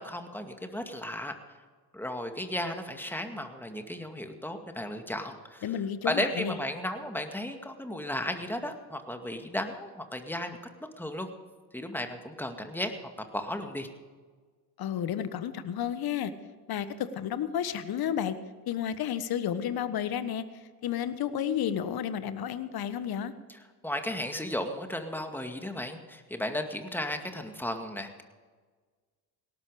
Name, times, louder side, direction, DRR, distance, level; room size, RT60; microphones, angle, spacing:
voice 1, 0.0-1.4 1.9-5.7 6.0-10.6 11.0-11.3 11.7-12.9 13.3-13.9 23.5-28.2, left 1 dB, 5° left, 5 dB, 2.1 m, -34 dB
voice 2, 5.6-6.5 14.8-16.3 16.7-18.3 18.7-20.4 20.8-23.3, left 9 dB, 45° left, 12 dB, 1.4 m, -31 dB
18.0 x 12.0 x 5.0 m, 1.5 s
hypercardioid pair, 65°, 49 cm